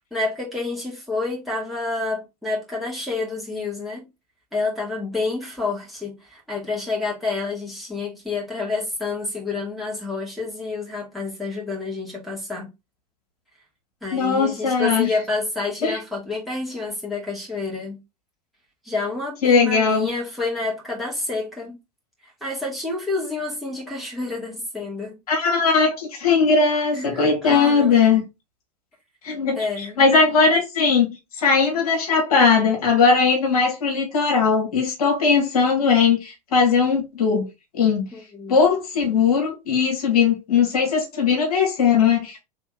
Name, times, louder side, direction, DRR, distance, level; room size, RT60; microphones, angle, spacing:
voice 1, 0.1-4.1 4.5-12.7 14.0-18.0 18.8-21.8 22.2-25.2 26.9-28.0 29.5-30.0 38.1-38.6, left 3 dB, ahead, 2.1 m, -29 dB
voice 2, 14.1-15.1 15.8-16.0 19.4-20.1 25.3-28.3 29.2-29.6 30.0-31.1 31.4-37.5 37.7-38.1 38.5-42.4, left 5 dB, 60° left, 1.7 m, -19 dB
3.6 x 3.4 x 3.5 m
figure-of-eight pair, 90°, 21 cm